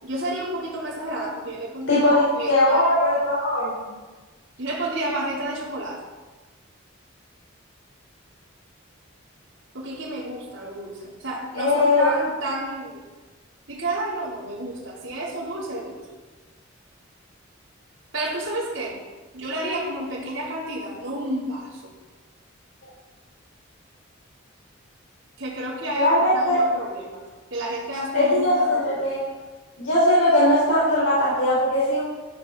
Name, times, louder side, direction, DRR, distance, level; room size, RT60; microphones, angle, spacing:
voice 1, 0.0-2.9 4.6-6.0 9.7-13.0 13.7-16.0 18.1-19.0 19.3-21.9 25.4-27.2 27.5-29.1, right 1 dB, 70° right, -7 dB, 4.2 m, -30 dB
voice 2, 1.9-3.7 11.6-12.1 25.9-26.6 28.1-29.2 29.8-32.0, left 1 dB, 80° left, -7 dB, 4.8 m, -20 dB
14.5 x 13.5 x 4.4 m, 1.3 s
head